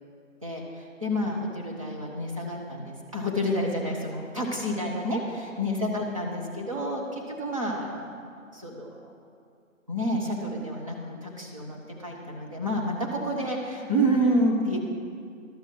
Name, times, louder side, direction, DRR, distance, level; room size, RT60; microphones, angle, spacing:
voice 1, 0.4-8.1 8.5-9.2 9.9-14.8, equal, 25° right, -2 dB, 1.0 m, -29 dB
12.0 x 6.4 x 4.6 m, 2.3 s
figure-of-eight pair, 160°, 41 cm